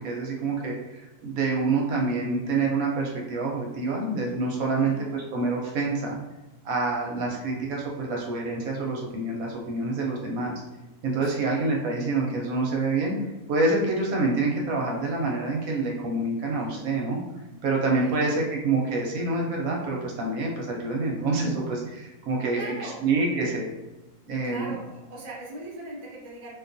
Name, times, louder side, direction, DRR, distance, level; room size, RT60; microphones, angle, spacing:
voice 1, 0.0-6.2 6.6-10.6 11.0-13.1 13.5-17.2 17.6-23.7 24.3-24.7, right 3 dB, 70° right, -1 dB, 0.9 m, -27 dB
voice 2, 4.8-5.1 11.2-11.4 16.6-16.9 18.0-18.4 22.5-23.0 24.4-26.5, right 2 dB, 50° right, -4 dB, 0.4 m, -40 dB
2.6 x 2.2 x 2.5 m, 1.0 s
omnidirectional pair, 1.7 m